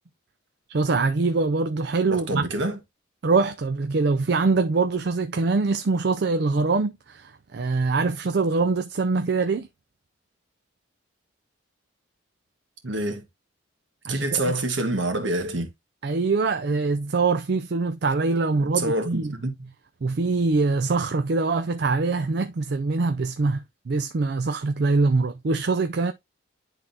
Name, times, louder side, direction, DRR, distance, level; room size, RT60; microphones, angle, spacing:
voice 1, 0.7-2.4 3.2-9.7 14.1-14.4 16.0-19.3 20.0-26.1, right 3 dB, 55° right, 0.4 m, -23 dB
voice 2, 2.1-2.8 12.8-13.2 14.1-15.7 18.5-19.7, right 2 dB, 70° right, 1.6 m, -27 dB
11.0 x 3.7 x 2.7 m
head